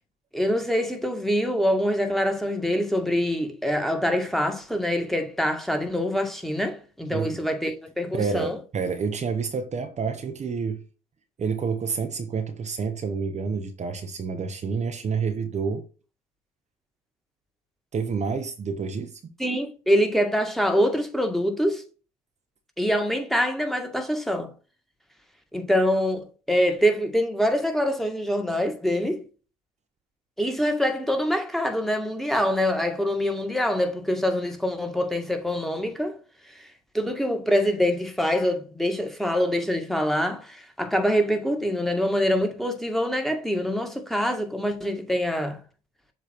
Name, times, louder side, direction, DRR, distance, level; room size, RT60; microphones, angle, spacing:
voice 1, 0.3-8.6 19.4-21.8 22.8-24.5 25.5-29.2 30.4-36.2 36.5-45.6, equal, ahead, 1.8 m, -25 dB
voice 2, 8.1-10.8 11.4-15.9 17.9-19.3, right 5 dB, 40° right, 1.0 m, -29 dB
7.4 x 3.1 x 4.6 m
hypercardioid pair, 65°, 19 cm